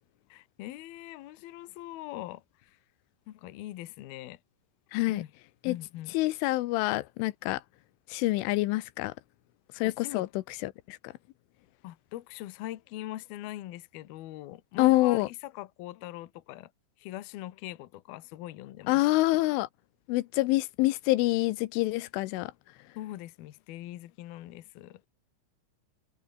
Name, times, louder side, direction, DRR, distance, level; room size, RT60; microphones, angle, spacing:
voice 1, 0.3-2.8 3.3-4.4 5.1-5.3 5.7-6.1 9.8-10.3 11.8-16.7 17.0-19.0 23.0-25.0, left 15 dB, 65° left, 2.7 m, -41 dB
voice 2, 4.9-5.2 5.7-5.8 6.1-7.6 8.1-9.1 9.8-10.3 10.6-11.1 14.8-15.3 18.9-19.7 20.1-22.5, left 19 dB, 85° left, 3.3 m, -26 dB
omnidirectional pair, 5.5 m